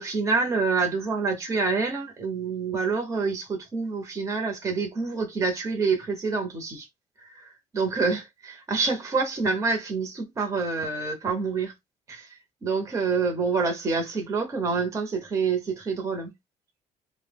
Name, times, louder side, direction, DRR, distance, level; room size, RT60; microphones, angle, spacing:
voice 1, 0.0-6.9 7.2-11.7 12.1-16.3, right 4 dB, 25° right, 0.6 m, -27 dB
2.7 x 2.0 x 3.3 m
cardioid pair, 135°, 14 cm